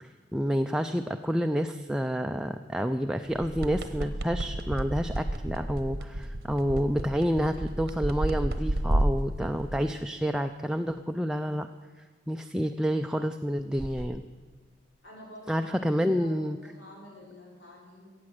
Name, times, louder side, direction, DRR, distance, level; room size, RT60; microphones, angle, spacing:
voice 1, 0.0-11.7 12.3-14.2 15.5-16.6, equal, 5° right, 6 dB, 0.3 m, -29 dB
sound 1, 3.3-9.9 13.7-14.1, right 1 dB, 55° right, 1.0 m, -31 dB
voice 2, 15.0-18.1, left 1 dB, 80° left, -5 dB, 5.5 m, -49 dB
15.0 x 8.6 x 7.8 m, 1.4 s
head